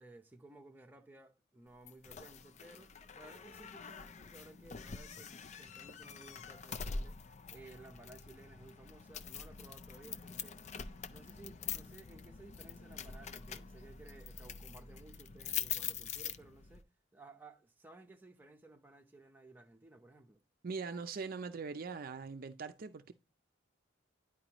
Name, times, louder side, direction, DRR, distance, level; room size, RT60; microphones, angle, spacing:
voice 1, 0.0-10.6 11.1-20.4, right 2 dB, 10° right, 0.8 m, -57 dB
sound 1, 1.9-16.8, left 6 dB, 35° left, 0.4 m, -45 dB
voice 2, 20.6-23.1, right 4 dB, 50° right, 0.5 m, -41 dB
10.5 x 4.6 x 2.9 m
head